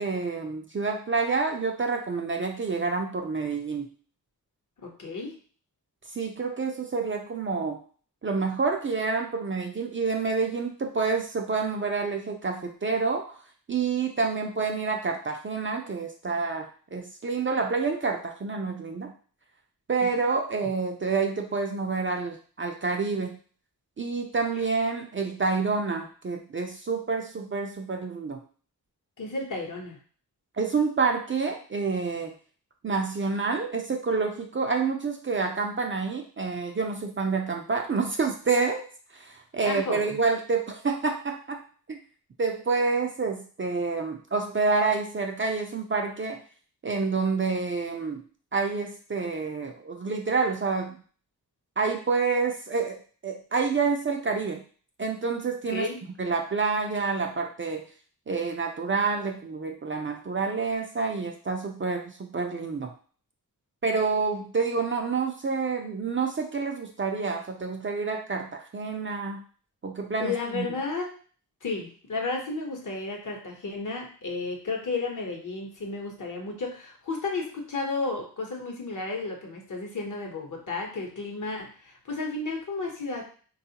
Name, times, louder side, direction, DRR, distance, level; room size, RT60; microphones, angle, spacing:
voice 1, 0.0-3.9 6.1-7.8 8.2-13.4 13.7-19.1 19.9-23.4 24.0-28.4 30.6-32.3 32.8-38.8 39.1-41.6 41.9-42.0 42.4-46.4 46.8-48.2 48.5-51.0 51.8-54.6 55.0-55.9 56.2-57.8 58.3-62.9 63.8-69.4 69.8-70.7, right 4 dB, 35° right, 3 dB, 0.4 m, -28 dB
voice 2, 4.8-5.3 20.0-20.2 29.2-30.0 39.6-40.2 55.7-56.0 70.2-71.1 71.6-83.3, left 3 dB, 55° left, 1 dB, 0.9 m, -33 dB
3.5 x 2.3 x 2.8 m, 0.42 s
wide cardioid pair, 80°, 38 cm